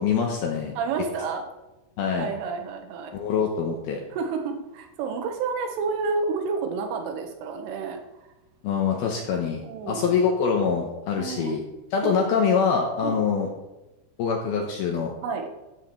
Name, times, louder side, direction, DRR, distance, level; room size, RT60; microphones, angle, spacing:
voice 1, 0.0-0.7 2.0-2.3 3.1-4.0 8.6-11.6 11.9-13.5 14.2-15.1, left 6 dB, 75° left, 1 dB, 2.4 m, -24 dB
voice 2, 0.8-1.4 2.2-3.1 4.1-8.0 9.6-10.2 11.2-11.6 12.0-12.3 13.0-13.2 15.2-15.5, right 4 dB, 80° right, 4 dB, 3.8 m, -30 dB
13.5 x 5.0 x 7.5 m, 1.0 s
omnidirectional pair, 5.6 m